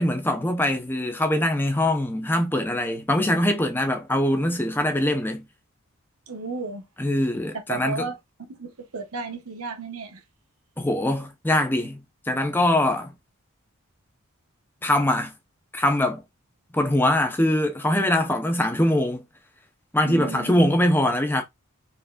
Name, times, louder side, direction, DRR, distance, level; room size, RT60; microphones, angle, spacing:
voice 1, 0.0-5.5 7.0-8.1 10.8-13.1 14.8-15.3 15.7-16.2 16.7-19.2 19.9-21.4, left 1 dB, 10° left, 0.7 m, -23 dB
voice 2, 6.3-6.8 7.7-8.2 8.5-10.2 20.0-20.5, right 4 dB, 80° right, 1.0 m, -33 dB
4.6 x 4.1 x 2.4 m
head